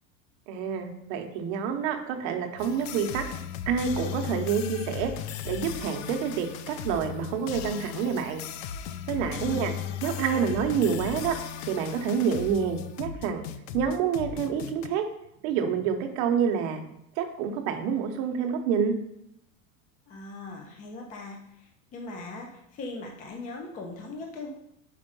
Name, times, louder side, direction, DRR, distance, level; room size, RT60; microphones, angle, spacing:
voice 1, 0.5-3.3 3.7-5.1 5.4-8.4 9.1-9.7 10.0-11.4 11.7-13.4 13.7-15.0 15.4-16.8 17.2-18.9, right 7 dB, 55° right, 5 dB, 0.9 m, -28 dB
sound 1, 2.6-14.9, left 9 dB, 75° left, 0.6 m, -37 dB
voice 2, 9.3-10.5 20.1-24.5, left 3 dB, 20° left, 1 dB, 0.5 m, -40 dB
5.0 x 4.5 x 5.3 m, 0.78 s
supercardioid pair, 165°, 40 cm